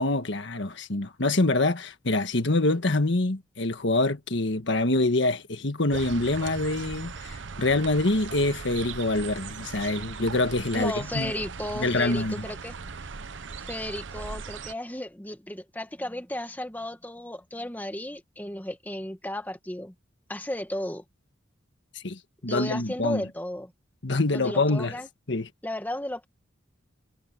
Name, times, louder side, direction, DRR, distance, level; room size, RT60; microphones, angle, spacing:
voice 1, 0.0-11.3 11.8-12.4 21.9-23.2 24.0-25.0 25.3-25.5, left 2 dB, 65° left, 1.5 m, -25 dB
sound 1, 5.9-14.7, right 5 dB, 65° right, 0.8 m, -39 dB
voice 2, 10.7-12.7 13.6-19.9 20.3-21.0 22.4-23.7 24.3-25.1 25.6-26.3, left 1 dB, 10° left, 1.5 m, -34 dB
head